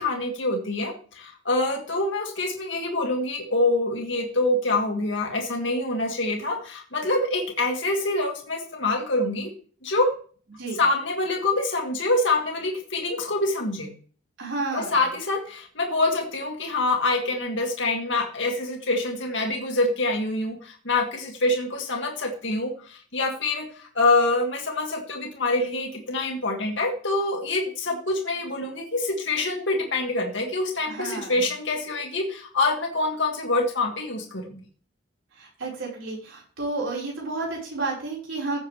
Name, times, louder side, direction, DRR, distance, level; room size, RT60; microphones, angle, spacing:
voice 1, 0.0-9.5 9.8-10.1 10.8-13.9 14.7-34.5, left 2 dB, 65° left, 2 dB, 2.1 m, -25 dB
voice 2, 14.4-15.0 30.9-31.4 35.3-38.6, right 3 dB, 75° right, -3 dB, 4.3 m, -31 dB
15.0 x 7.4 x 3.2 m, 0.42 s
head